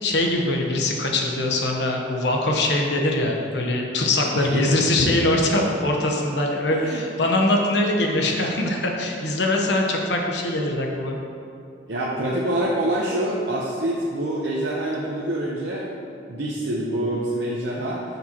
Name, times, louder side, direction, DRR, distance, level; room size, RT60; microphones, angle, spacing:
voice 1, 0.0-11.2, left 1 dB, 70° left, 1 dB, 1.0 m, -22 dB
voice 2, 4.3-4.8 6.7-7.0 11.9-15.9 16.3-18.0, right 1 dB, 80° right, -5 dB, 0.9 m, -26 dB
9.9 x 7.0 x 3.0 m, 2.5 s
head